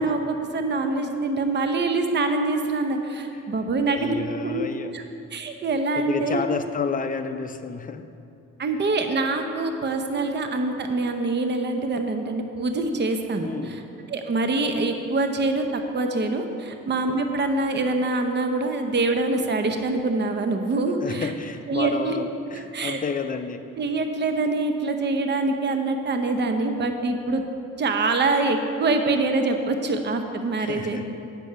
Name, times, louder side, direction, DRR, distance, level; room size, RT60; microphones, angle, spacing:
voice 1, 0.0-4.1 4.4-4.6 4.9-5.0 5.3-6.4 8.6-13.5 14.1-15.6 15.9-21.3 21.7-22.1 22.5-23.0 23.8-27.4 27.8-31.1, right 3 dB, 35° right, 6 dB, 0.8 m, -25 dB
voice 2, 3.9-4.9 6.0-8.1 13.4-13.8 16.7-16.8 21.0-23.7 30.6-31.1, left 5 dB, 30° left, 8 dB, 0.5 m, -30 dB
8.3 x 6.1 x 5.5 m, 2.7 s
cardioid pair, 90°, 30 cm